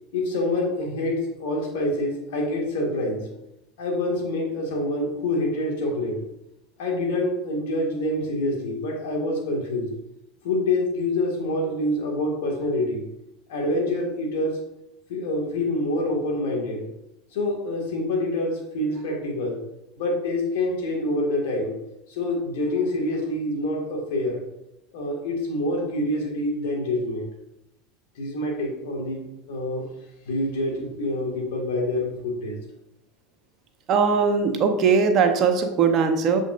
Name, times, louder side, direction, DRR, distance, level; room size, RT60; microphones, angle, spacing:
voice 1, 0.1-3.2 3.8-6.2 6.8-9.9 10.4-13.0 13.5-14.6 15.1-16.9 17.3-19.6 20.0-21.8 22.1-24.4 24.9-27.3 28.2-29.9 30.3-32.6, left 1 dB, 75° left, 0 dB, 1.9 m, -26 dB
voice 2, 33.9-36.4, right 5 dB, 45° right, 6 dB, 0.9 m, -20 dB
7.3 x 5.1 x 2.5 m, 0.86 s
hypercardioid pair, 100°, 0 cm